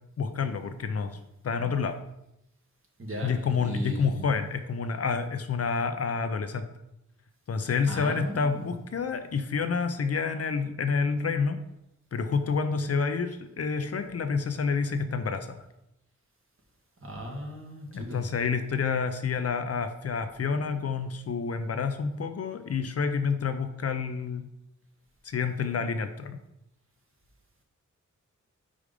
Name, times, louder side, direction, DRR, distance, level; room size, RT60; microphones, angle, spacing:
voice 1, 0.2-1.2 1.4-2.0 3.2-6.7 7.5-11.6 12.1-15.6 17.9-24.5 25.2-26.4, left 5 dB, 55° left, 8 dB, 0.6 m, -28 dB
voice 2, 3.0-4.2 7.8-8.7 17.0-18.2, equal, 45° right, 1 dB, 1.7 m, -37 dB
5.1 x 5.0 x 5.1 m, 0.84 s
wide cardioid pair, 100°, 30 cm